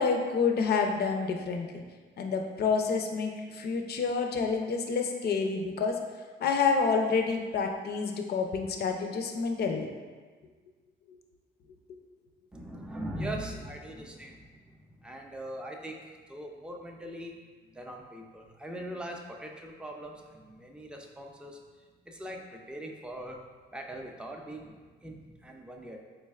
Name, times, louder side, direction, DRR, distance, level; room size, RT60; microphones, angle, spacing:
voice 1, 0.0-1.8 2.2-6.0 6.4-9.9, left 5 dB, 55° left, 3 dB, 0.5 m, -28 dB
voice 2, 12.5-17.3 17.7-21.6 22.1-23.4 23.7-26.0, right 1 dB, 5° right, 1 dB, 0.4 m, -41 dB
4.1 x 3.2 x 2.3 m, 1.4 s
cardioid pair, 90°, 20 cm